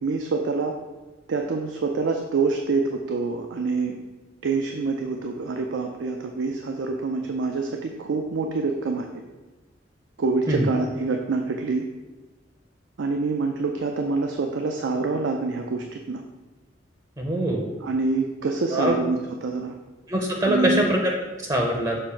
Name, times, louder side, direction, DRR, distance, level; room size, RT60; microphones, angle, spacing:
voice 1, 0.0-0.7 1.3-4.0 4.4-9.1 10.2-11.8 13.0-16.2 17.8-19.7 20.4-20.8, right 3 dB, 85° right, 3 dB, 0.5 m, -26 dB
voice 2, 17.2-17.7 18.7-19.0 20.1-22.0, right 1 dB, 20° right, 1 dB, 0.6 m, -23 dB
6.5 x 2.6 x 5.6 m, 1.2 s
head